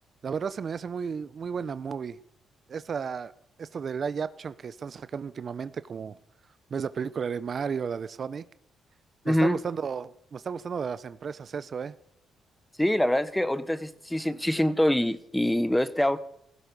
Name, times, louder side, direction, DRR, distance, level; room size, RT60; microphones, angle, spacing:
voice 1, 0.2-2.2 2.7-3.3 3.6-6.2 6.7-8.4 9.2-11.9, right 6 dB, 45° right, 0.7 m, -33 dB
voice 2, 9.2-9.6 12.8-16.2, left 1 dB, 5° left, 1.1 m, -25 dB
17.0 x 15.5 x 5.3 m
cardioid pair, 90°, 0 cm